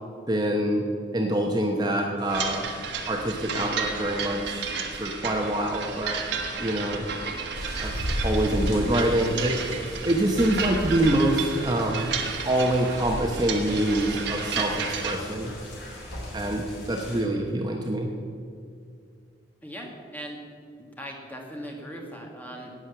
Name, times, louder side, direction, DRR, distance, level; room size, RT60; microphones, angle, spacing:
voice 1, 0.3-0.9 1.1-2.7 3.1-4.7 5.0-6.3 6.6-7.0 7.8-7.9 8.2-9.6 10.0-12.1 12.4-15.5 16.3-18.1, right 1 dB, 20° right, 1 dB, 0.9 m, -25 dB
sound 1, 2.2-15.2, right 5 dB, 60° right, 1.3 m, -33 dB
sound 2, 7.5-17.2, equal, 65° left, 3.8 m, -35 dB
voice 2, 19.6-20.4 20.8-22.7, equal, 10° left, 0 dB, 1.9 m, -39 dB
17.5 x 6.4 x 7.0 m, 2.3 s
head